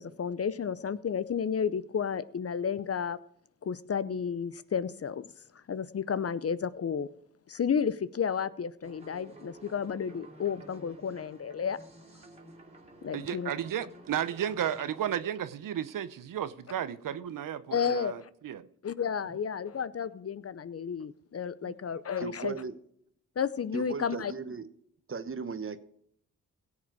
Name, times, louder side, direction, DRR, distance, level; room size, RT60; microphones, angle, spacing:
voice 1, 0.0-3.2 3.6-5.3 5.5-7.1 7.5-11.8 13.0-13.5 17.7-18.3 18.8-22.5 23.4-24.3, left 7 dB, 45° left, 0.7 m, -32 dB
sound 1, 8.8-15.1, right 2 dB, 20° right, 2.6 m, -52 dB
voice 2, 13.1-18.7 21.6-21.8, right 10 dB, 70° right, 0.7 m, -33 dB
voice 3, 22.2-22.7 23.7-24.7 25.1-25.8, right 5 dB, 40° right, 1.1 m, -36 dB
17.0 x 7.4 x 4.7 m
cardioid pair, 55°, 34 cm